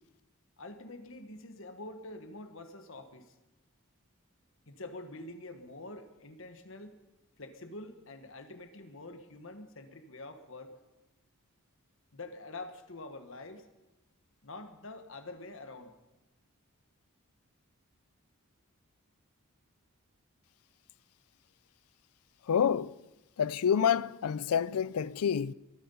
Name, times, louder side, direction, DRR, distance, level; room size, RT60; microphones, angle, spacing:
voice 1, 0.6-3.4 4.7-7.0 7.4-10.8 12.1-13.7 14.4-16.0, left 2 dB, 60° left, 1.4 m, -46 dB
voice 2, 22.5-23.0 23.4-25.5, left 8 dB, 85° left, 0.4 m, -28 dB
22.0 x 9.4 x 5.6 m
head